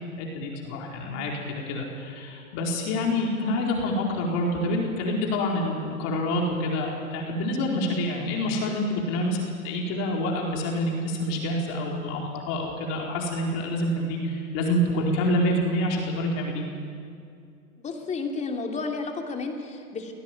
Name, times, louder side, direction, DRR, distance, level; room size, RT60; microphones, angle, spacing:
voice 1, 0.2-16.6, left 1 dB, 35° left, -1 dB, 4.5 m, -27 dB
voice 2, 17.8-20.1, left 4 dB, 15° left, 3 dB, 2.8 m, -32 dB
25.5 x 17.5 x 9.3 m, 2.3 s
hypercardioid pair, 120°, 44 cm